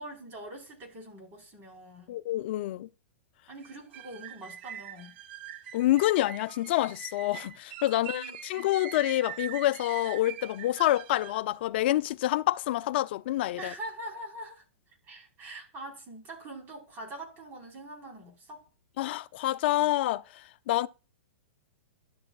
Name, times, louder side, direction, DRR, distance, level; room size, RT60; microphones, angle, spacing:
voice 1, 0.0-2.2 3.5-5.1 7.9-8.3 13.6-14.6 15.1-18.7, right 1 dB, 30° right, 4.5 m, -43 dB
voice 2, 2.1-2.9 5.7-13.7 19.0-20.2 20.7-20.9, left 15 dB, 55° left, 0.5 m, -27 dB
sound 1, 3.6-11.5, right 10 dB, 55° right, 0.8 m, -43 dB
12.0 x 7.5 x 2.4 m
hypercardioid pair, 135°, 7 cm